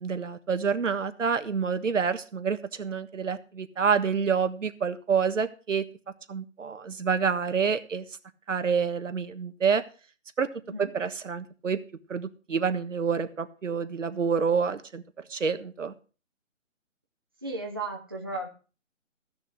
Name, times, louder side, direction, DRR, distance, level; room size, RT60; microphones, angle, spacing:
voice 1, 0.0-5.8 6.3-8.0 8.5-9.8 10.4-10.5 10.8-11.8 12.1-15.0 15.3-15.9, right 6 dB, 70° right, 10 dB, 1.5 m, -27 dB
voice 2, 17.4-18.5, right 2 dB, 20° right, -1 dB, 0.7 m, -34 dB
14.5 x 6.8 x 6.1 m, 0.36 s
hypercardioid pair, 175°, 39 cm